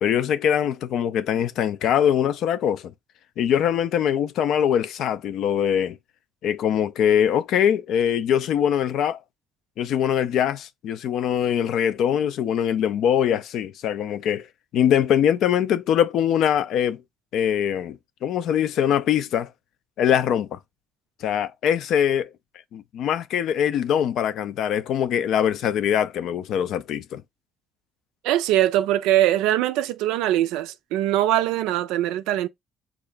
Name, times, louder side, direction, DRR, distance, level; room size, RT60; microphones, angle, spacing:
voice 1, 0.0-2.9 3.4-6.0 6.4-9.2 9.8-14.5 14.7-17.0 17.3-19.5 20.0-20.6 21.2-22.3 22.7-27.2, left 9 dB, 75° left, 0.3 m, -22 dB
voice 2, 28.2-32.5, right 13 dB, 90° right, 0.3 m, -22 dB
3.5 x 2.2 x 3.7 m
supercardioid pair, 75°, 0 cm